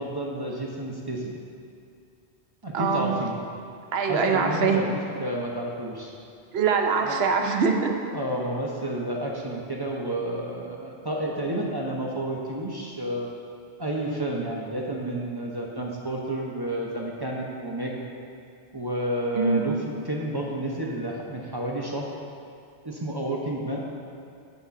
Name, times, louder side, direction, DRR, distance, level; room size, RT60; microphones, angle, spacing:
voice 1, 0.0-1.4 2.6-3.3 4.1-4.9 5.2-6.1 7.0-7.2 8.1-13.3 13.8-18.0 18.7-19.8 20.1-22.1 22.8-23.8, right 1 dB, 25° right, -2 dB, 0.7 m, -30 dB
voice 2, 2.7-3.1 3.9-4.8 6.5-7.9 19.3-19.7, right 5 dB, 70° right, 3 dB, 1.0 m, -23 dB
8.3 x 4.1 x 6.8 m, 2.5 s
omnidirectional pair, 1.1 m